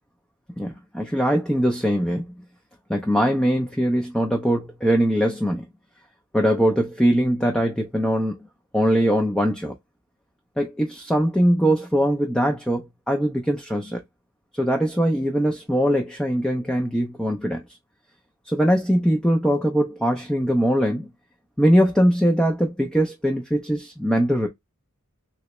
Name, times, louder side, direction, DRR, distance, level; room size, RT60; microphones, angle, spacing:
voice 1, 0.6-2.3 2.9-5.6 6.3-8.4 8.7-9.7 10.6-14.0 14.5-17.6 18.5-21.1 21.6-24.5, equal, 5° left, 0.5 m, -21 dB
3.3 x 3.0 x 3.0 m
head